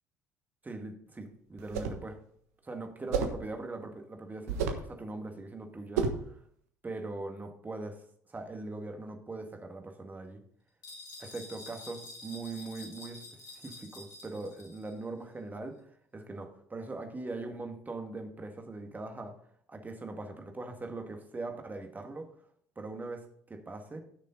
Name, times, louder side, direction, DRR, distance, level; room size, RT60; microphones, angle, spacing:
voice 1, 0.6-2.2 2.6-6.4 6.8-8.0 8.3-10.4 11.2-13.2 13.5-15.9 16.1-19.3 19.7-22.3 22.8-24.0, right 2 dB, 20° right, 5 dB, 1.9 m, -41 dB
sound 1, 1.6-2.1 3.1-3.5 4.5-4.9 6.0-6.3, right 5 dB, 70° right, 1.3 m, -31 dB
sound 2, 10.8-15.0, left 2 dB, 50° left, 4.0 m, -48 dB
14.5 x 6.5 x 4.0 m, 0.64 s
figure-of-eight pair, 55°, 9 cm